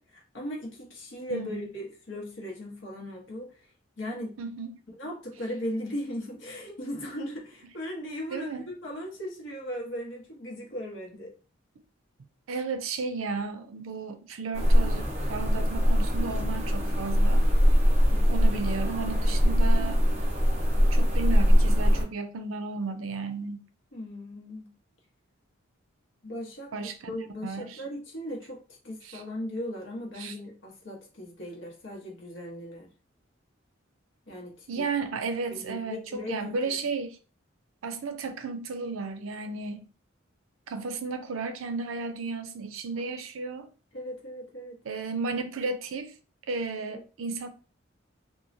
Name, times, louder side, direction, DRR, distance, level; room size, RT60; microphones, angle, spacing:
voice 1, 0.0-3.7 4.0-4.4 5.0-11.3 18.1-18.4 23.9-24.7 26.2-26.7 27.1-28.6 28.8-32.9 34.3-34.9 35.5-36.7 43.0-43.1 43.9-44.8 46.9-47.0, equal, 65° left, 0.9 m, -38 dB
voice 2, 1.3-1.7 4.4-4.7 8.3-8.6 12.5-17.5 18.3-20.0 20.9-23.7 26.7-27.0 27.4-27.8 29.0-29.2 30.2-30.3 34.7-37.2 37.8-39.9 40.7-43.7 44.8-46.1 46.5-47.5, right 4 dB, 85° right, 0.5 m, -33 dB
sound 1, 14.5-22.0, equal, 30° right, 0.7 m, -22 dB
3.0 x 2.3 x 2.5 m
head